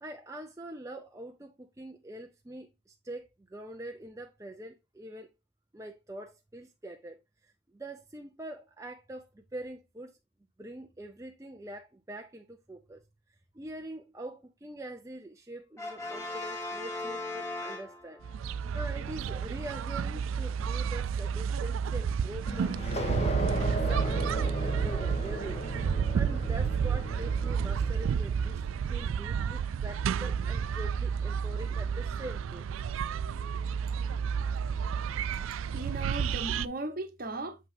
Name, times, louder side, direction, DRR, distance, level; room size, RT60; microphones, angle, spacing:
voice 1, 0.0-5.3 5.7-7.2 7.4-10.2 10.6-13.0 13.5-18.2 18.7-23.0 23.7-32.7, right 1 dB, 15° right, 0.5 m, -44 dB
Brass instrument, 15.8-18.4, left 2 dB, 15° left, 1.5 m, -38 dB
sound 1, 18.2-36.7, right 7 dB, 80° right, 0.3 m, -31 dB
sound 2, 22.5-28.8, equal, 30° left, 1.3 m, -35 dB
voice 2, 35.7-37.7, right 2 dB, 45° right, 1.0 m, -37 dB
7.4 x 5.7 x 2.7 m
head